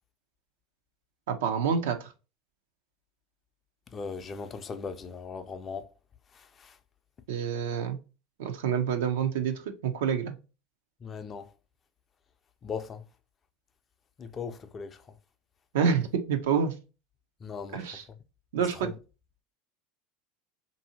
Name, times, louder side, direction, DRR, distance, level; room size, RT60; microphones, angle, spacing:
voice 1, 1.3-2.0 7.3-8.0 8.4-10.3 15.7-16.7 17.7-18.0 18.5-18.9, right 7 dB, 80° right, 0.5 m, -27 dB
voice 2, 3.9-5.9 6.4-6.7 11.0-11.5 12.6-13.0 14.2-15.0 17.4-17.8 18.8-18.9, left 5 dB, 30° left, 0.4 m, -38 dB
2.7 x 2.6 x 2.7 m
hypercardioid pair, 95°, 0 cm